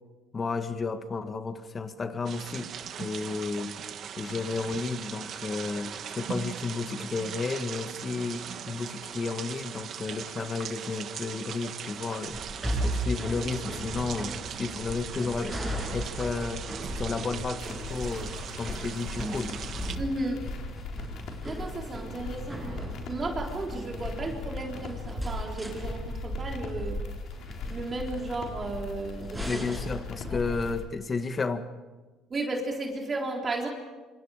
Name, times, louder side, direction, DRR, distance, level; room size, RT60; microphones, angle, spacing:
voice 1, 0.3-2.7 3.0-3.7 4.2-15.6 15.9-16.7 17.0-18.3 18.6-19.6 29.5-31.7, left 4 dB, 30° left, 9 dB, 1.7 m, -32 dB
sound 1, 2.2-20.0, right 8 dB, 50° right, 1.5 m, -39 dB
sound 2, 12.3-30.7, equal, 10° right, 7.9 m, -37 dB
sound 3, 17.6-30.8, left 3 dB, 60° left, 4.2 m, -39 dB
voice 2, 20.0-20.4 21.4-27.0 27.7-29.6 30.3-30.4 32.3-33.7, right 2 dB, 30° right, 0 dB, 3.8 m, -34 dB
26.5 x 26.0 x 5.0 m, 1.2 s
cardioid pair, 110°, 0 cm